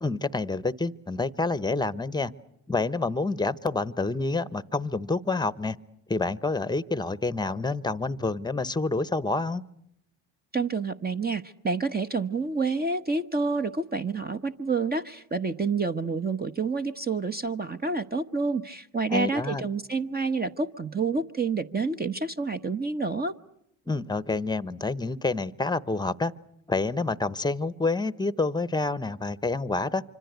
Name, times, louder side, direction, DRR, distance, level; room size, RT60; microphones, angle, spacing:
voice 1, 0.0-2.3 2.7-5.8 6.1-9.6 19.1-19.6 23.9-26.3 26.7-30.0, left 3 dB, 10° left, 18 dB, 1.0 m, -28 dB
voice 2, 10.5-23.3, right 4 dB, 20° right, 8 dB, 1.0 m, -28 dB
25.5 x 25.5 x 8.1 m, 0.76 s
supercardioid pair, 70°, 45 cm